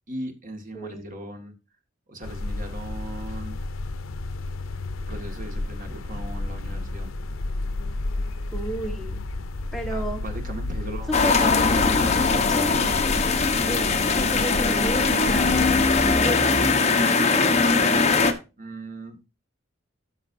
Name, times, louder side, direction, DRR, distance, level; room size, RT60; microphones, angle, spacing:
voice 1, 0.1-1.5 2.1-3.6 5.1-7.1 9.9-11.2 11.5-12.6 18.6-19.2, right 1 dB, 40° right, 4 dB, 2.1 m, -38 dB
voice 2, 0.7-1.0 8.5-9.2 9.7-10.2 11.1-12.8 13.6-16.6, equal, ahead, 2 dB, 1.4 m, -32 dB
sound 1, 2.2-16.2, left 2 dB, 80° left, 0.7 m, -32 dB
sound 2, 11.1-18.3, left 4 dB, 35° left, 1.1 m, -21 dB
13.0 x 5.9 x 2.7 m, 0.29 s
head